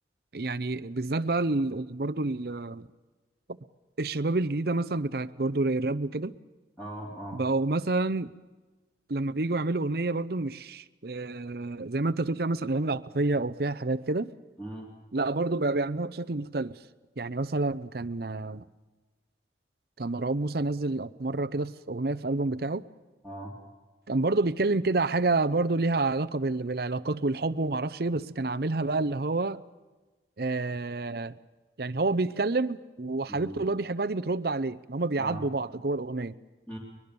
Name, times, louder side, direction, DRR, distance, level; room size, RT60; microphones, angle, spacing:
voice 1, 0.3-2.9 3.5-3.6 4.0-6.3 7.3-8.3 9.1-14.3 15.1-16.8 17.2-18.6 20.0-22.8 24.1-29.6 30.4-31.4 31.8-36.4, right 2 dB, 55° right, 0.7 m, -28 dB
voice 2, 6.8-7.4 14.6-14.9 23.2-23.5 33.3-33.5 35.2-35.4 36.7-36.8, right 1 dB, 10° left, 3.5 m, -39 dB
22.5 x 22.0 x 6.9 m
head